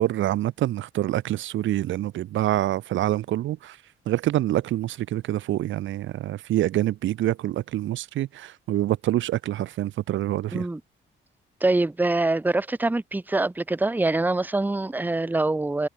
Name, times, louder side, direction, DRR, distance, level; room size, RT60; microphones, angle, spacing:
voice 1, 0.0-3.8 4.1-10.7, right 14 dB, 75° right, 1.0 m, -26 dB
voice 2, 11.6-15.9, right 2 dB, 10° right, 0.8 m, -24 dB
cardioid pair, 90°, 20 cm